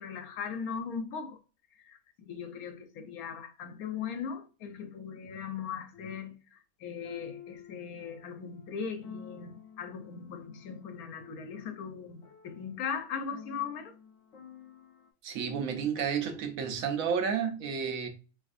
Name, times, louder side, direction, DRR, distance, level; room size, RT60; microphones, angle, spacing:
voice 1, 0.0-1.4 1.8-13.9, left 6 dB, 80° left, 1.2 m, -39 dB
sound 1, 4.8-4.9 5.9-6.2 7.0-15.1, left 7 dB, 65° left, 1.2 m, -51 dB
voice 2, 15.2-18.1, right 7 dB, 70° right, 1.1 m, -31 dB
5.0 x 2.5 x 2.4 m
omnidirectional pair, 1.5 m